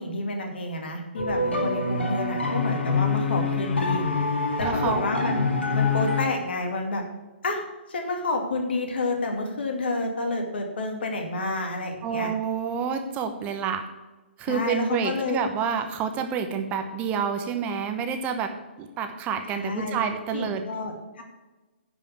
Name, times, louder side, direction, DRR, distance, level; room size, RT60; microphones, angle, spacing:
voice 1, 0.0-4.1 4.6-5.5 5.7-7.0 7.4-12.3 14.5-15.4 19.5-20.0 20.3-21.2, left 2 dB, 60° left, 3 dB, 2.4 m, -29 dB
sound 1, 1.2-6.2, left 4 dB, 80° left, 2.4 m, -25 dB
voice 2, 4.6-5.0 12.0-13.9 14.4-20.6, right 6 dB, 25° right, 7 dB, 0.9 m, -28 dB
10.5 x 5.3 x 6.9 m, 1.2 s
figure-of-eight pair, 130°, 6 cm